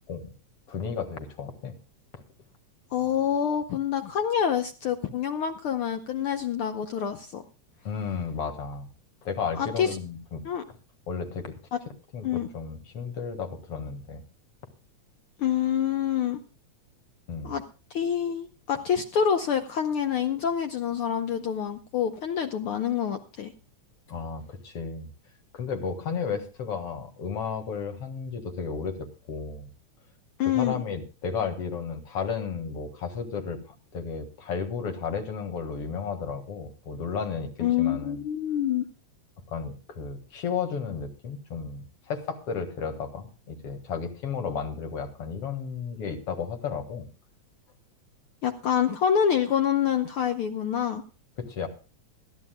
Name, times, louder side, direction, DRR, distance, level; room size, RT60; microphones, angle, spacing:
voice 1, 0.7-1.7 7.8-8.9 9.2-10.4 11.1-11.5 12.1-14.2 17.3-17.6 24.1-25.1 25.5-29.7 30.5-33.6 33.9-37.5 37.8-38.2 39.5-47.1 51.4-51.7, left 6 dB, 55° left, 6 dB, 2.6 m, -33 dB
voice 2, 2.9-7.4 9.5-10.0 10.4-10.6 12.2-12.5 15.4-16.4 17.4-17.6 17.9-23.5 30.4-30.8 37.6-38.8 48.4-51.0, left 8 dB, 70° left, 7 dB, 1.3 m, -26 dB
21.0 x 13.5 x 2.2 m, 0.33 s
omnidirectional pair, 3.4 m